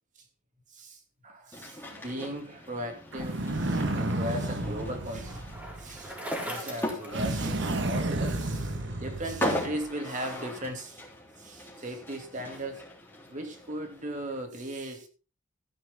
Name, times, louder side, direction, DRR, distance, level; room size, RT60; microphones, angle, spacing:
voice 1, 0.7-5.4 5.8-6.2 6.4-11.0 11.4-12.9 13.3-15.1, right 1 dB, 40° right, 4 dB, 2.6 m, -37 dB
sound 1, 1.5-14.4, left 1 dB, 10° left, 3.6 m, -39 dB
sound 2, 3.1-6.2 7.1-9.8, right 2 dB, 60° right, 1.5 m, -31 dB
Bicycle, 3.6-8.0, right 1 dB, 10° right, 4.0 m, -42 dB
13.5 x 9.6 x 3.7 m, 0.35 s
head